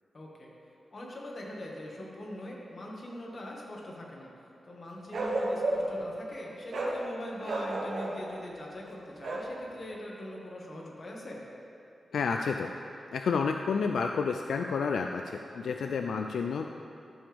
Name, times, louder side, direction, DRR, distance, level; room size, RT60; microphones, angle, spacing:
voice 1, 0.1-0.5 0.9-4.3 4.6-11.4, left 1 dB, 45° left, -3 dB, 1.9 m, -42 dB
Bark, 5.1-6.0 6.7-7.0 7.4-8.2 9.2-9.5, right 2 dB, 70° right, 1.3 m, -31 dB
voice 2, 12.1-12.7 13.1-16.7, left 5 dB, 85° left, 4 dB, 0.3 m, -30 dB
13.5 x 7.0 x 3.6 m, 3.0 s
wide cardioid pair, 85°, 0 cm